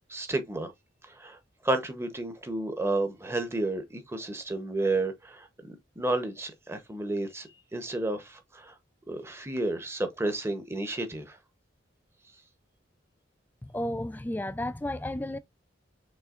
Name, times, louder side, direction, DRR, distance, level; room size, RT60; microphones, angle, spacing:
voice 1, 0.1-0.7 1.1-1.4 1.6-8.7 9.1-11.4, right 2 dB, 15° right, 0.8 m, -31 dB
voice 2, 13.6-15.4, left 1 dB, 10° left, 0.3 m, -33 dB
6.2 x 3.3 x 2.4 m
head